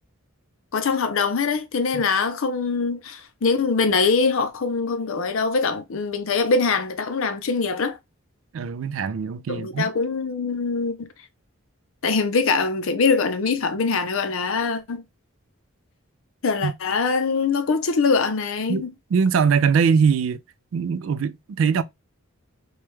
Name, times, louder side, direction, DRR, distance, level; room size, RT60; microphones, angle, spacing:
voice 1, 0.7-8.0 9.5-11.1 12.0-15.0 16.4-18.9, left 4 dB, 65° left, 0.5 m, -23 dB
voice 2, 8.5-9.9 16.6-16.7 18.7-18.8 19.1-20.4 20.7-21.8, right 6 dB, 65° right, 0.3 m, -21 dB
3.1 x 2.3 x 3.0 m
head